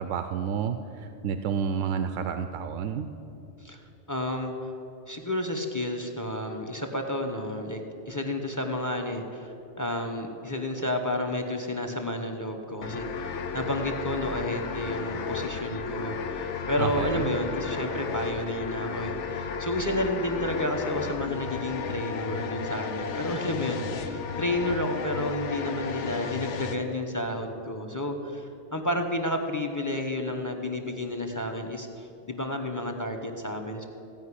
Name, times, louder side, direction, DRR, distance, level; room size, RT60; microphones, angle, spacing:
voice 1, 0.0-3.1 16.8-17.3, right 7 dB, 90° right, 9 dB, 0.9 m, -30 dB
voice 2, 4.1-4.7 5.1-33.9, left 1 dB, 15° left, 4 dB, 0.9 m, -31 dB
sound 1, 12.8-26.8, left 5 dB, 75° left, 1.0 m, -34 dB
15.5 x 5.4 x 9.8 m, 2.9 s
omnidirectional pair, 1.3 m